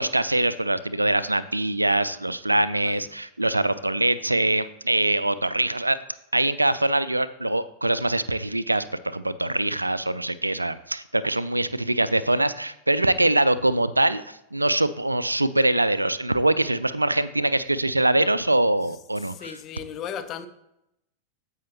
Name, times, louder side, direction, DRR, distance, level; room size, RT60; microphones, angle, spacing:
voice 1, 0.0-6.0 6.3-19.6, right 1 dB, 85° right, 0.4 m, -23 dB
voice 2, 19.2-20.5, left 8 dB, 35° left, 0.9 m, -36 dB
15.0 x 5.5 x 2.9 m
figure-of-eight pair, 90°, 0 cm